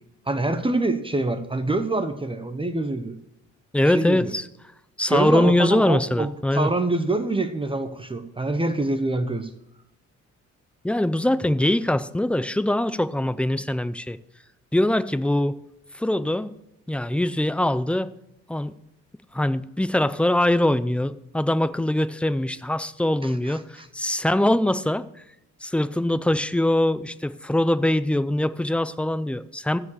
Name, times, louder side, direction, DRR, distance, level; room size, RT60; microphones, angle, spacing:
voice 1, 0.3-3.2 3.8-4.3 5.1-9.5 23.2-23.9, right 2 dB, 15° right, 8 dB, 0.9 m, -26 dB
voice 2, 3.7-4.5 5.0-6.7 10.8-14.2 14.7-15.6 15.9-16.5 16.9-18.1 18.5-18.7 19.3-25.1 25.6-29.8, left 1 dB, 5° left, 14 dB, 0.5 m, -22 dB
14.5 x 4.9 x 6.4 m, 0.83 s
cardioid pair, 90°, 30 cm